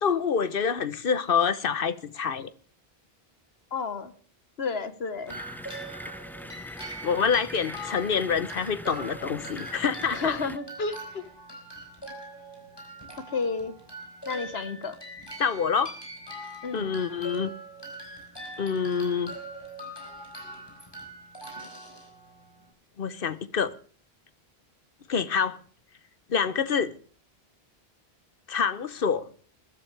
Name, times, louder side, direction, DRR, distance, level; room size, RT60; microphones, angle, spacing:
voice 1, 0.0-2.5 7.0-10.3 15.4-15.9 16.7-17.5 18.6-19.4 23.0-23.7 25.1-25.6 26.3-26.9 28.5-29.3, left 6 dB, 60° left, 1.1 m, -26 dB
voice 2, 3.7-4.1 4.6-5.4 10.1-11.2 13.3-13.7 14.2-15.0 16.6-16.9, left 4 dB, 80° left, 1.5 m, -31 dB
sound 1, 5.2-22.7, right 1 dB, 25° left, 4.5 m, -42 dB
sound 2, 5.3-10.6, equal, 5° left, 0.3 m, -42 dB
21.0 x 12.5 x 3.4 m
omnidirectional pair, 1.0 m